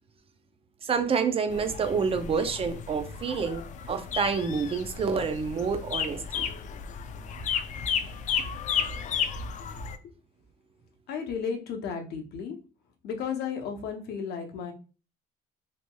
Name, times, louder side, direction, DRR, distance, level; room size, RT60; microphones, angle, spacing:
voice 1, 0.8-3.6 3.9-6.5, right 5 dB, 35° right, 8 dB, 0.5 m, -28 dB
sound 1, 1.5-10.0, left 7 dB, 45° left, 0.4 m, -33 dB
voice 2, 11.1-12.5 13.0-14.7, left 6 dB, 70° left, 5 dB, 0.7 m, -33 dB
3.0 x 2.9 x 2.2 m, 0.34 s
cardioid pair, 110°, 17 cm